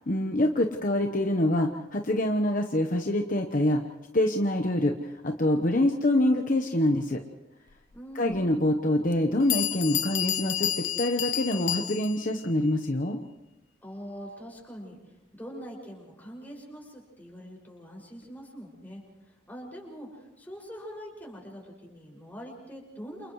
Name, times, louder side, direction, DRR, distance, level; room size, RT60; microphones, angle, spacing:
voice 1, 0.1-3.8 4.1-4.9 5.2-7.2 8.1-13.2, left 1 dB, 45° left, 4 dB, 1.1 m, -25 dB
voice 2, 7.9-8.6 13.8-15.0 15.3-19.0 19.5-23.3, equal, 10° left, -2 dB, 6.3 m, -43 dB
Bell, 8.3-8.4 9.1-9.2 9.5-12.3, left 12 dB, 65° left, 0.6 m, -30 dB
29.0 x 29.0 x 3.2 m, 0.99 s
head